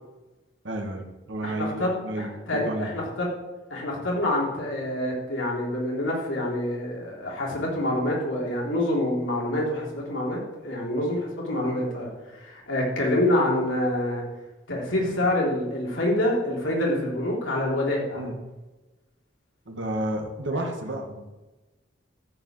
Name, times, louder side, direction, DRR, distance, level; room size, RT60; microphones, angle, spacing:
voice 1, 0.6-2.9 18.1-18.4 19.6-21.3, right 1 dB, 75° right, 3 dB, 1.7 m, -31 dB
voice 2, 1.4-3.3 3.7-14.2 14.7-18.2 20.5-20.6, left 1 dB, 90° left, -3 dB, 3.6 m, -26 dB
14.0 x 5.1 x 7.5 m, 1.1 s
head